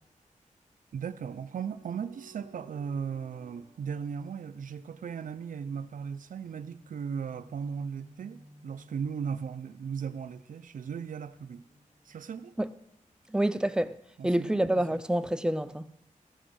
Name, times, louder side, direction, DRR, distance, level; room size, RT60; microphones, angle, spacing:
voice 1, 0.9-11.6 12.0-12.6 14.2-15.0, right 6 dB, 75° right, 0.5 m, -37 dB
sound 1, 1.7-5.3 6.8-10.5 11.3-12.5, right 1 dB, 30° right, 1.8 m, -57 dB
voice 2, 13.3-14.0 14.2-15.9, right 1 dB, 5° right, 0.4 m, -27 dB
15.5 x 6.2 x 6.2 m
wide cardioid pair, 115°, 14 cm